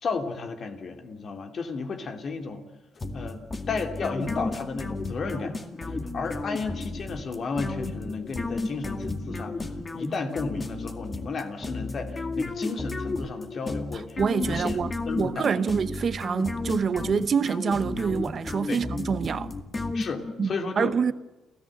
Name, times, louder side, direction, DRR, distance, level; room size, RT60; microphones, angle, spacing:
voice 1, 0.0-2.6 3.1-5.6 5.8-9.6 9.9-14.8 15.1-15.5 18.7-18.8 19.9-21.1, left 4 dB, 50° left, 2.9 m, -33 dB
sound 1, 3.0-20.5, left 3 dB, 30° left, 2.1 m, -33 dB
voice 2, 14.2-19.5 20.4-20.5 20.8-21.1, right 6 dB, 50° right, 0.8 m, -26 dB
30.0 x 14.5 x 7.9 m
cardioid pair, 90°, 0 cm